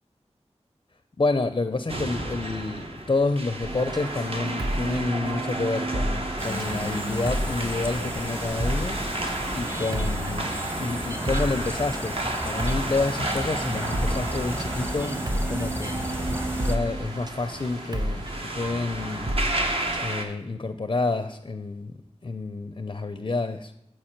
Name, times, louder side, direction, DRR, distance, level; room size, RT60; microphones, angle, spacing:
voice 1, 1.2-9.0 9.5-10.5 10.8-16.0 16.6-19.3 20.0-21.9 22.2-23.7, left 3 dB, 40° left, 8 dB, 0.4 m, -29 dB
sound 1, 1.9-20.3, right 1 dB, 55° right, 0.9 m, -33 dB
sound 2, 3.6-20.0, right 1 dB, 35° right, 0.5 m, -32 dB
sound 3, 6.4-16.8, equal, 20° right, 1.0 m, -33 dB
7.3 x 4.6 x 4.4 m, 0.84 s
wide cardioid pair, 50°, 12 cm